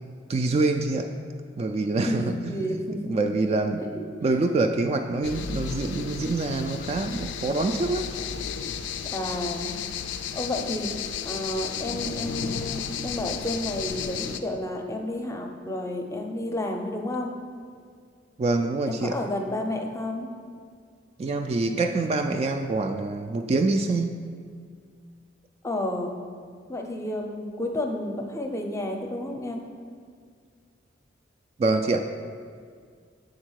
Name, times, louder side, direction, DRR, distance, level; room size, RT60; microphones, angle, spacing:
voice 1, 0.3-1.1 1.6-2.8 3.0-3.8 4.2-8.1 18.4-19.2 21.2-24.2 31.6-32.0, right 3 dB, 35° right, 6 dB, 0.3 m, -25 dB
voice 2, 2.0-3.2 4.2-4.5 9.0-9.8 10.3-10.9 11.2-17.3 18.9-20.3 25.6-26.1 26.7-29.6, left 1 dB, 15° left, 3 dB, 0.6 m, -31 dB
sound 1, 5.2-14.4, left 7 dB, 75° left, 0.4 m, -33 dB
7.3 x 3.7 x 6.3 m, 2.1 s
head